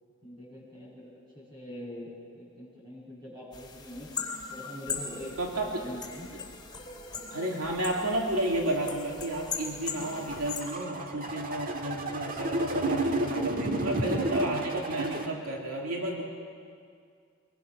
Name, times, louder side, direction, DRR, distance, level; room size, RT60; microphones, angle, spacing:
voice 1, 0.2-4.1 4.5-6.3, equal, 20° right, -4 dB, 7.3 m, -44 dB
sound 1, 3.5-10.6, left 5 dB, 20° left, 3.0 m, -39 dB
voice 2, 5.4-5.9 7.3-16.2, right 1 dB, 90° right, 0 dB, 2.5 m, -32 dB
sound 2, 10.0-15.3, right 1 dB, 40° right, 1.7 m, -31 dB
23.5 x 22.0 x 6.1 m, 2.2 s
head